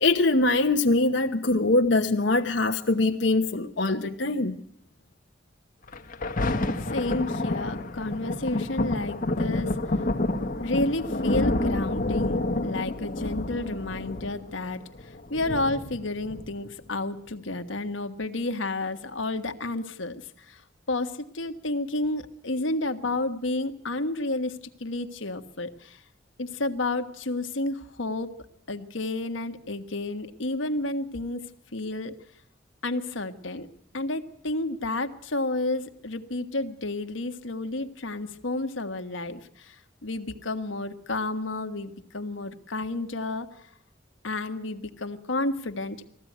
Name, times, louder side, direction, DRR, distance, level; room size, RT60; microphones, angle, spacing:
voice 1, 0.0-4.6, left 2 dB, 65° left, 1.1 m, -23 dB
Thunder, 5.9-16.9 17.5-17.6, left 2 dB, 45° left, 1.3 m, -29 dB
voice 2, 6.9-9.8 10.6-20.6 20.9-26.0 26.4-28.3 28.7-31.4 31.7-32.2 32.8-33.7 33.9-43.6 44.2-46.0, left 2 dB, 80° left, 1.5 m, -31 dB
21.0 x 15.0 x 9.4 m
head